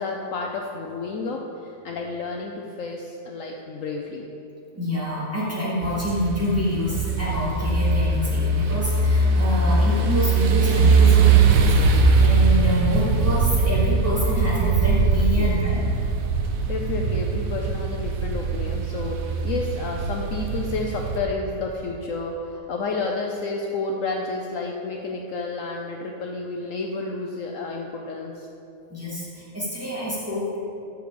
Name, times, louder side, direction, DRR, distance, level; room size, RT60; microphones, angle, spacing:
voice 1, 0.0-4.3 15.4-15.6 16.7-28.5, left 3 dB, 65° left, 1 dB, 1.0 m, -30 dB
voice 2, 4.7-15.8 28.9-30.6, left 1 dB, 10° right, -8 dB, 2.3 m, -27 dB
sound 1, 5.8-21.2, right 4 dB, 70° right, 1.1 m, -21 dB
10.0 x 6.4 x 5.1 m, 2.8 s
omnidirectional pair, 1.6 m